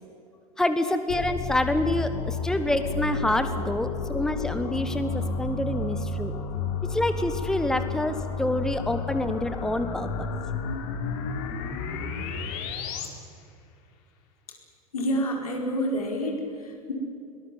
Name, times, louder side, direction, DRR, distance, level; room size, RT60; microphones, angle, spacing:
voice 1, 0.6-6.3 6.9-10.3, left 1 dB, 5° left, 10 dB, 1.3 m, -27 dB
sound 1, 1.1-13.1, left 4 dB, 50° left, 3.2 m, -31 dB
voice 2, 14.9-16.9, equal, 70° left, 2 dB, 4.8 m, -28 dB
22.5 x 20.0 x 9.1 m, 2.5 s
figure-of-eight pair, 85°, 19 cm